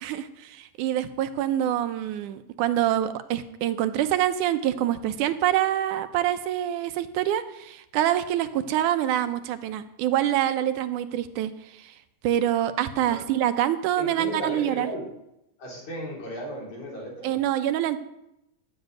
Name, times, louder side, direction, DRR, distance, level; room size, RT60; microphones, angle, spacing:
voice 1, 0.0-11.5 12.2-14.9 17.2-18.0, right 12 dB, 80° right, 10 dB, 2.3 m, -25 dB
voice 2, 14.0-15.1 15.6-17.4, equal, 70° left, -2 dB, 5.4 m, -35 dB
14.0 x 8.0 x 9.2 m, 0.85 s
omnidirectional pair, 3.6 m